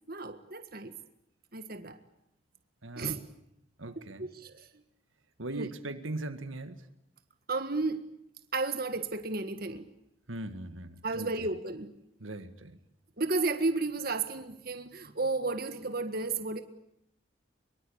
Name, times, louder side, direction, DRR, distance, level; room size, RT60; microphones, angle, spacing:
voice 1, 0.1-0.9 1.5-2.0 3.0-3.2 4.2-4.7 5.5-5.7 7.5-8.0 8.5-9.9 11.0-11.9 13.2-16.6, right 3 dB, 50° right, 1.7 m, -33 dB
voice 2, 2.8-3.2 3.8-4.3 5.4-6.8 10.3-11.3 12.2-12.8, right 2 dB, 85° right, 1.9 m, -39 dB
24.5 x 23.5 x 8.8 m
head